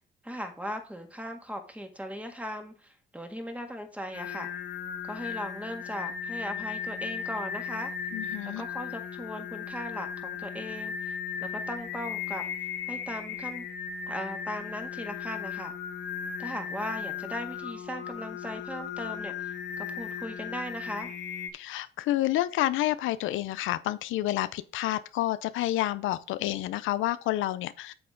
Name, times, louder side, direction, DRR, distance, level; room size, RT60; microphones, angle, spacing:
voice 1, 0.2-4.5 5.0-7.9 8.6-12.4 12.9-13.7 14.1-15.7 16.4-21.1, equal, 5° right, 1.8 m, -38 dB
Singing, 4.1-21.5, left 7 dB, 70° left, 1.4 m, -36 dB
voice 2, 8.1-8.6 21.5-27.9, left 15 dB, 90° left, 0.6 m, -29 dB
8.7 x 6.9 x 3.8 m
cardioid pair, 90°, 20 cm